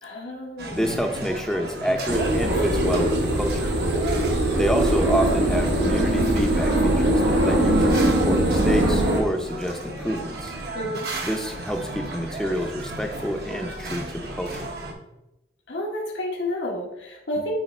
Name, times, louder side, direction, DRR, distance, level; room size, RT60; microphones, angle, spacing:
voice 1, 0.0-0.8 2.5-2.9 10.7-11.1 15.7-17.5, left 1 dB, 85° left, -2 dB, 1.3 m, -31 dB
sound 1, 0.6-14.9, right 2 dB, 60° right, 1.1 m, -35 dB
voice 2, 0.7-3.8 4.6-10.6 11.2-14.7, equal, 5° left, 4 dB, 0.6 m, -28 dB
sound 2, 2.1-9.2, right 1 dB, 85° right, 1.3 m, -21 dB
9.0 x 3.3 x 4.4 m, 0.91 s
head